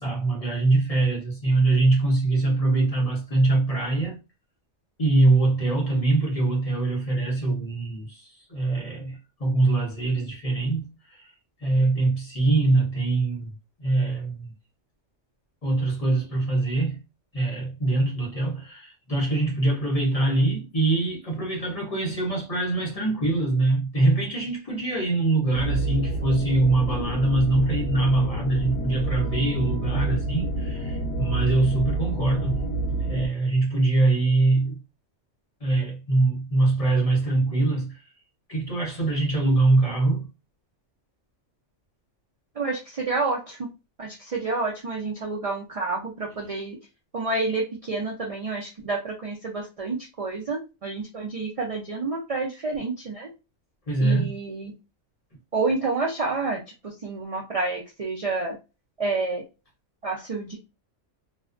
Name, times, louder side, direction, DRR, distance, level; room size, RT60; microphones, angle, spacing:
voice 1, 0.0-4.2 5.0-11.3 11.6-13.5 13.8-14.5 15.6-17.0 17.3-32.6 33.1-34.8 35.6-38.0 38.5-40.3 53.9-54.3, right 2 dB, 35° left, 0.7 m, -23 dB
sound 1, 25.5-33.3, right 2 dB, 75° left, 1.0 m, -28 dB
voice 2, 42.6-43.6 44.0-46.8 47.1-53.3 54.0-54.7 55.5-58.6 59.0-59.4 60.0-60.6, right 3 dB, 60° right, 0.3 m, -29 dB
2.4 x 2.1 x 2.4 m
omnidirectional pair, 1.3 m